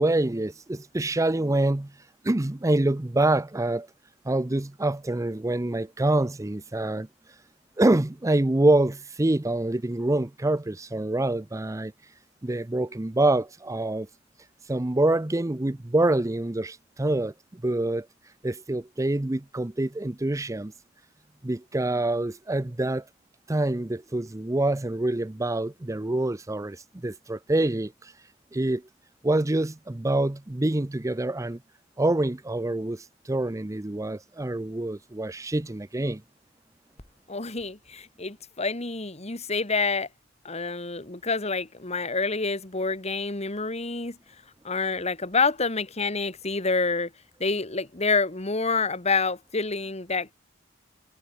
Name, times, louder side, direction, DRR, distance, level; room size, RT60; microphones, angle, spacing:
voice 1, 0.0-1.9 2.2-3.9 4.3-7.1 7.8-11.9 12.4-14.1 14.7-18.1 18.4-20.7 21.4-23.0 23.5-28.1 28.5-28.8 29.2-31.6 32.0-36.2, right 2 dB, 15° right, 0.6 m, -26 dB
voice 2, 37.3-40.1 40.4-44.2 44.6-47.1 47.4-50.3, left 4 dB, 35° left, 2.2 m, -27 dB
head